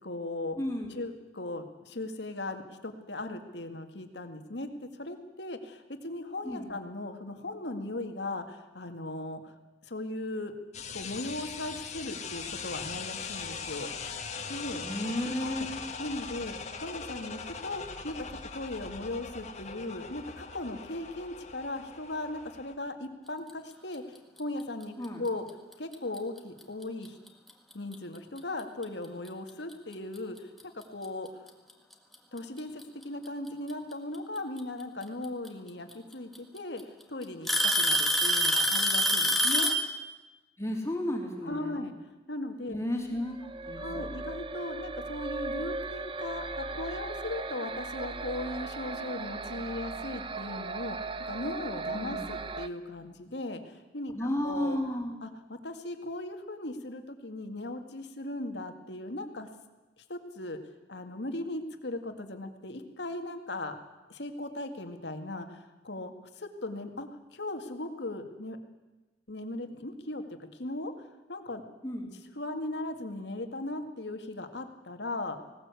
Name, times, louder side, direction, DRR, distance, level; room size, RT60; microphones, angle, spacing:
voice 1, 0.0-0.6 1.0-9.5 9.8-10.5 10.9-13.9 14.5-14.9 15.4-15.7 16.0-16.5 16.8-18.2 18.5-24.0 24.4-25.4 25.8-27.2 27.7-30.5 30.7-31.3 32.3-39.7 41.4-41.9 42.3-42.8 43.8-54.8 55.2-59.5 60.1-60.6 60.9-63.8 64.1-68.6 69.3-70.9 71.3-71.6 72.4-75.4, left 2 dB, 80° left, 6 dB, 2.0 m, -38 dB
voice 2, 0.6-0.9 6.4-6.7 14.8-15.8 25.0-25.2 40.6-41.8 42.7-43.4 43.6-44.2 51.9-52.2 54.1-55.2 71.8-72.1, left 1 dB, 15° left, 1 dB, 3.0 m, -33 dB
sound 1, 10.7-22.7, left 5 dB, 40° left, 1.7 m, -40 dB
Alarm / Tick-tock, 25.9-26.2 27.1-27.2 27.9-28.0 29.7-29.8 31.0-31.1 32.4-32.8 34.6-34.7 35.9-36.0 36.4-36.8 37.5-39.9, equal, ahead, 1.8 m, -25 dB
sound 2, 43.2-52.7, right 3 dB, 30° right, 0.8 m, -37 dB
19.0 x 18.0 x 8.3 m, 1.1 s
head